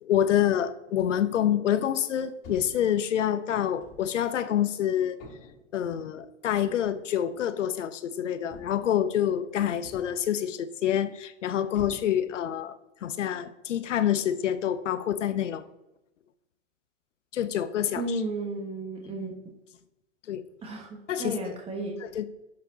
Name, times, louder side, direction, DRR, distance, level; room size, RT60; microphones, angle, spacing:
voice 1, 0.0-5.2 5.7-12.7 13.0-15.6 17.3-18.2 20.3-20.4 21.1-21.6 22.0-22.3, left 10 dB, 75° left, 11 dB, 0.9 m, -27 dB
sound 1, 2.4-2.9 3.8-4.1 5.2-5.7 6.8-7.0 8.5-9.0 9.8-10.3 11.7-12.4, left 4 dB, 45° left, 2.5 m, -46 dB
voice 2, 17.9-19.3 20.6-22.0, right 2 dB, 15° right, 0 dB, 1.3 m, -33 dB
12.0 x 4.5 x 3.8 m, 0.90 s
hypercardioid pair, 105°, 37 cm